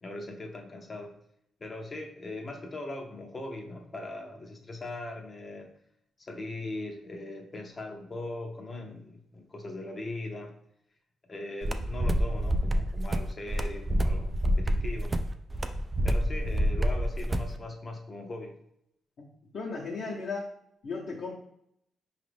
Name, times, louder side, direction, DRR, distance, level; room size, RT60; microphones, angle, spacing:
voice 1, 0.0-1.1 1.6-5.7 6.2-10.5 11.3-15.1 16.0-18.6, left 2 dB, 30° left, 3 dB, 0.7 m, -40 dB
sound 1, 11.6-17.5, equal, 25° right, 0.3 m, -27 dB
voice 2, 19.5-20.4 20.8-21.3, left 4 dB, 60° left, -6 dB, 0.9 m, -35 dB
5.0 x 2.5 x 3.3 m, 0.76 s
cardioid pair, 90°, 0 cm